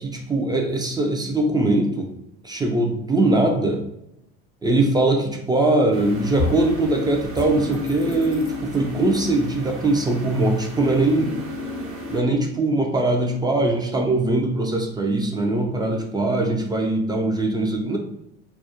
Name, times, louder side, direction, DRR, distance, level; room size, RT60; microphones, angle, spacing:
voice 1, 0.0-2.1 2.4-3.8 4.6-11.3 12.1-18.0, right 2 dB, 15° right, 2 dB, 0.3 m, -21 dB
sound 1, 5.6-6.0 6.4-6.8 7.3-8.8, left 3 dB, 75° left, 0.6 m, -30 dB
sound 2, 5.9-12.2, left 2 dB, 50° right, 0.7 m, -33 dB
2.3 x 2.0 x 2.8 m, 0.82 s
supercardioid pair, 100°, 29 cm